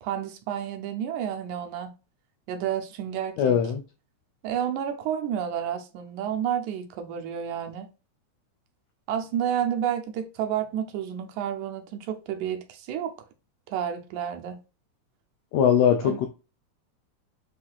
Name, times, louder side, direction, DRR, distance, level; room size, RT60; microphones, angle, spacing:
voice 1, 0.0-1.9 2.5-3.6 4.4-7.9 9.1-13.1 13.7-14.6 16.0-16.2, right 9 dB, 80° right, 2.1 m, -30 dB
voice 2, 3.4-3.8 15.5-16.3, left 8 dB, 85° left, 1.5 m, -21 dB
7.4 x 2.7 x 2.3 m
omnidirectional pair, 3.5 m